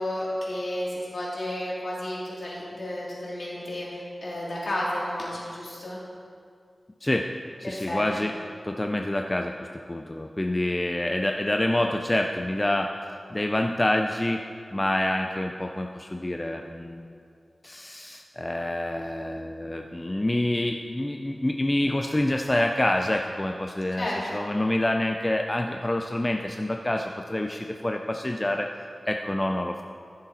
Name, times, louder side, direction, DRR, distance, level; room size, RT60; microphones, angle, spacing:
voice 1, 0.0-6.0 7.6-8.3 24.0-24.4, left 1 dB, 65° left, -6 dB, 3.0 m, -32 dB
voice 2, 7.6-8.3 8.6-12.9 13.3-14.4 14.7-17.1 17.6-28.7 29.1-29.8, left 1 dB, 20° left, 4 dB, 0.4 m, -27 dB
15.0 x 6.7 x 4.2 m, 2.3 s
wide cardioid pair, 85°, 0 cm